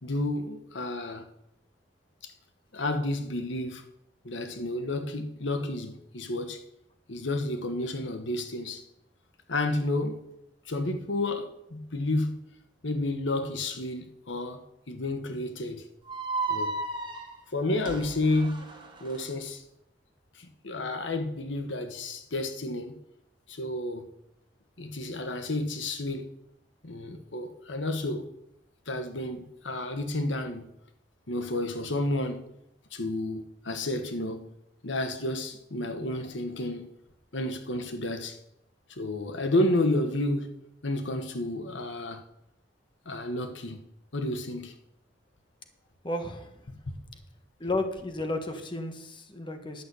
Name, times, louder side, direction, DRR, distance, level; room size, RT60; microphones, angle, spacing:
voice 1, 0.0-1.2 2.2-2.3 2.7-3.8 4.2-6.6 7.1-8.8 9.5-10.2 10.6-12.4 12.8-15.8 16.5-16.7 17.5-18.7 19.0-19.6 20.3-22.9 23.5-24.1 24.8-26.2 26.8-28.3 28.9-30.7 31.3-32.4 32.9-34.4 34.8-36.9 37.3-38.4 38.9-40.5 40.8-42.2 43.0-43.8 44.1-44.7 46.9-47.0, left 2 dB, 90° left, 7 dB, 1.3 m, -31 dB
sound 1, 16.1-19.2, right 3 dB, 25° right, 1.6 m, -34 dB
voice 2, 46.0-46.5 47.6-49.8, left 2 dB, 25° left, 6 dB, 1.3 m, -32 dB
11.0 x 6.2 x 8.2 m, 0.80 s
head